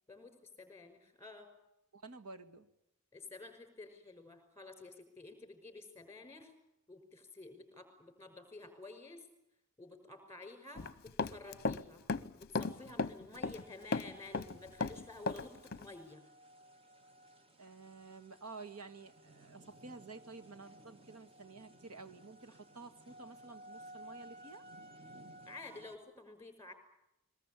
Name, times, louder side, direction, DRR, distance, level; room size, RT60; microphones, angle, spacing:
voice 1, 0.1-1.5 3.1-6.5 6.9-9.2 9.8-12.0 12.3-16.2 25.5-26.7, left 2 dB, 10° left, 8 dB, 5.5 m, -51 dB
voice 2, 1.9-2.7 17.6-24.6, right 3 dB, 85° right, 9 dB, 2.1 m, -51 dB
Run, 10.8-11.8 12.1-13.6 13.9-15.4 15.7-15.8, left 3 dB, 45° left, 0.8 m, -35 dB
sound 1, 13.5-26.0, right 1 dB, 25° right, 1.7 m, -57 dB
22.5 x 21.0 x 8.5 m, 0.84 s
head